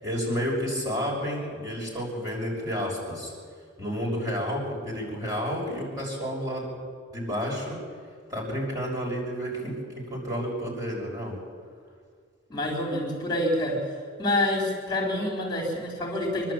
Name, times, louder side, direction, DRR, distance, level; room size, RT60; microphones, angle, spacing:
voice 1, 0.0-3.3 3.8-6.7 7.1-7.8 8.3-11.4, equal, 20° right, -2 dB, 6.7 m, -30 dB
voice 2, 12.5-13.8 14.2-16.5, left 1 dB, 25° left, 1 dB, 4.6 m, -27 dB
25.5 x 12.0 x 9.1 m, 2.1 s
head